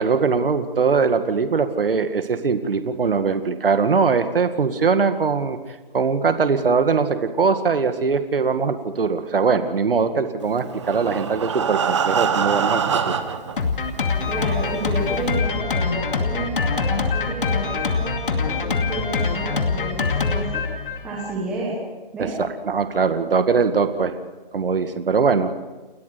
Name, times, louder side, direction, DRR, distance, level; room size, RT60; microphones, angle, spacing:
voice 1, 0.0-5.6 5.9-13.2 22.2-24.1 24.5-25.6, right 5 dB, 70° right, 8 dB, 2.1 m, -21 dB
Breathing, 10.6-13.6 14.3-14.4 14.8-14.9 15.3-15.4, right 6 dB, 30° right, 1.2 m, -24 dB
Drum kit, 13.6-21.4, left 4 dB, 65° left, 2.5 m, -24 dB
voice 2, 14.3-20.6 21.0-21.8 22.1-22.3, right 2 dB, 5° right, -6 dB, 1.1 m, -30 dB
30.0 x 13.5 x 6.9 m, 1.2 s
hypercardioid pair, 175°, 29 cm